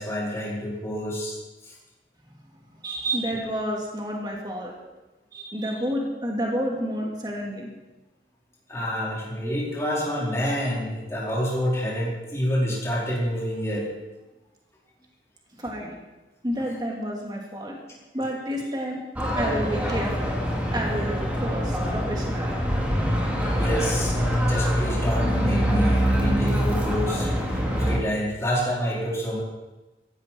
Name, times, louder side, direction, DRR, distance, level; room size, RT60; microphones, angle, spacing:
voice 1, 0.0-1.4 1.6-1.7 8.7-13.8 23.6-29.4, equal, 15° left, -5 dB, 4.8 m, -28 dB
voice 2, 2.8-4.7 5.3-7.7 15.6-16.0 16.4-17.8 18.1-19.0 19.3-20.3 20.7-22.6, equal, 25° right, -1 dB, 2.5 m, -30 dB
sound 1, 19.2-28.0, equal, 10° right, 3.0 m, -24 dB
17.5 x 15.0 x 4.6 m, 1.1 s
head